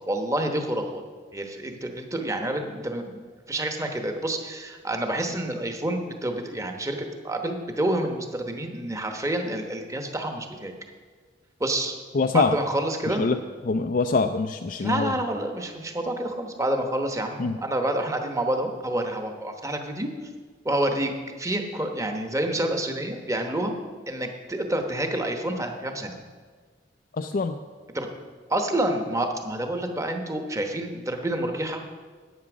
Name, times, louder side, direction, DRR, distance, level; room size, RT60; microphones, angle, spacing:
voice 1, 0.1-1.0 1.3-3.2 3.5-10.7 11.6-12.0 12.3-13.3 14.8-20.1 20.6-21.1 21.4-23.7 24.1-26.2 27.9-28.1 28.5-31.8, right 1 dB, 15° right, 5 dB, 1.0 m, -28 dB
voice 2, 12.1-12.6 13.2-13.4 13.6-15.1 17.4-17.6 27.2-27.6, left 4 dB, 45° left, 7 dB, 0.4 m, -24 dB
11.0 x 8.7 x 6.1 m, 1.5 s
head